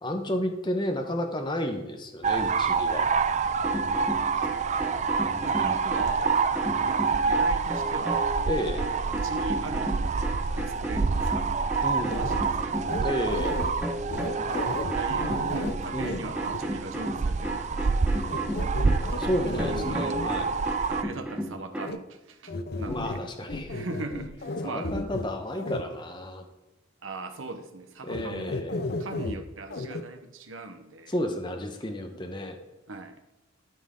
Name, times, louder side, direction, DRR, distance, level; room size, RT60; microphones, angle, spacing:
voice 1, 0.0-3.1 8.5-8.8 11.8-12.3 13.0-13.6 15.9-16.3 19.2-20.5 22.9-23.7 24.6-26.4 28.0-28.8 31.1-32.6, equal, 20° left, 4 dB, 0.9 m, -31 dB
sound 1, 2.2-21.0, right 5 dB, 35° right, 0.3 m, -27 dB
sound 2, 3.5-8.4 8.8-21.9, right 1 dB, 5° right, 1.0 m, -34 dB
voice 2, 4.7-6.3 6.8-8.3 8.8-10.2 10.5-11.5 11.9-13.0 14.4-18.6 19.5-20.3 20.9-23.2 23.7-24.9 27.0-28.6 29.0-31.1 32.9-33.2, right 2 dB, 75° right, 8 dB, 1.0 m, -40 dB
sound 3, 12.1-12.4 12.8-13.7 14.1-16.2 16.5-16.6 18.3-20.3 21.8-22.0 22.5-23.2 23.5-25.3 25.6-25.8 28.1-28.2 28.5-29.4 29.7-30.0, left 2 dB, 50° left, 0.6 m, -34 dB
13.0 x 6.3 x 3.7 m, 1.0 s
head